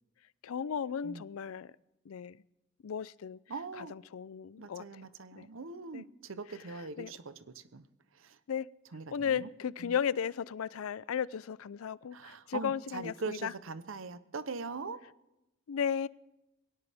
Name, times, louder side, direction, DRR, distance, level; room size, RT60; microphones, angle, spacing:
voice 1, 0.4-1.7 2.1-2.4 2.8-3.4 3.7-5.1 5.4-5.5 5.9-6.0 6.7-7.1 8.5-8.7 9.1-13.5 15.7-16.1, left 7 dB, 85° left, 21 dB, 0.4 m, -35 dB
voice 2, 3.5-4.0 4.6-7.8 8.2-8.4 8.9-9.5 9.8-9.9 12.1-15.0, right 4 dB, 70° right, 13 dB, 0.8 m, -41 dB
20.5 x 17.5 x 3.5 m, 0.92 s
head